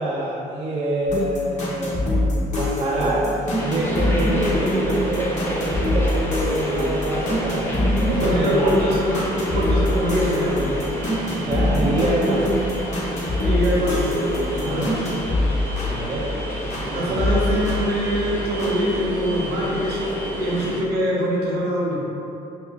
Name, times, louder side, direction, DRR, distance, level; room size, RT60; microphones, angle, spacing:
voice 1, 0.0-3.3 3.6-8.7 11.3-12.6 14.6-15.0 15.8-16.3 16.7-17.3, right 1 dB, 35° right, -5 dB, 0.5 m, -26 dB
sound 1, 1.1-16.9 17.2-18.7, left 1 dB, 45° left, 0.9 m, -24 dB
sound 2, 3.6-20.8, equal, 15° left, 0.6 m, -30 dB
voice 2, 8.2-10.8 13.4-15.0 16.9-22.0, equal, 75° right, -4 dB, 0.8 m, -24 dB
4.6 x 2.4 x 2.3 m, 2.8 s
cardioid pair, 110°, 17 cm